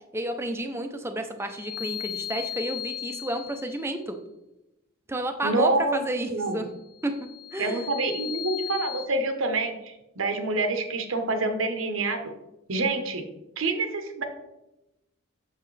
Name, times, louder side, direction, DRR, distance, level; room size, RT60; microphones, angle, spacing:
voice 1, 0.1-4.2 5.1-6.7 7.0-7.1 7.5-7.8, right 1 dB, 10° right, 6 dB, 0.5 m, -31 dB
sound 1, 1.4-4.0 6.9-9.1, left 12 dB, 50° left, 1.0 m, -36 dB
voice 2, 5.4-6.7 7.6-12.3 12.7-13.2 13.6-14.2, right 3 dB, 75° right, 6 dB, 1.0 m, -27 dB
7.6 x 6.6 x 3.2 m, 0.95 s
head